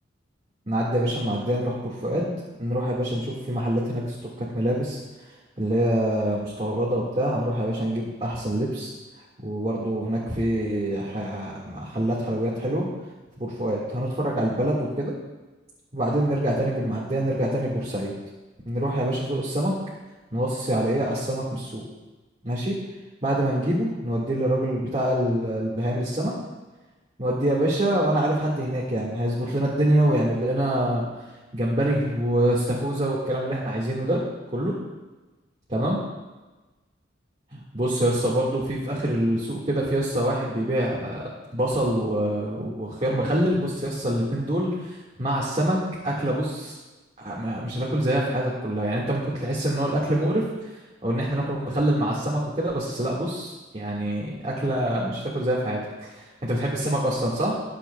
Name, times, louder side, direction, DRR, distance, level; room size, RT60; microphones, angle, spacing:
voice 1, 0.7-2.3 2.6-5.0 5.6-8.9 9.4-12.9 13.4-15.1 15.9-18.1 18.7-19.7 20.3-21.8 22.4-22.8 23.2-26.3 27.2-31.1 31.5-34.2 34.5-34.7 35.7-36.0 37.5-41.2 41.5-45.8 46.0-46.8 47.2-50.4 51.0-56.1 56.5-57.5, right 1 dB, 35° right, -5 dB, 1.7 m, -25 dB
21.5 x 7.6 x 2.3 m, 1.2 s
head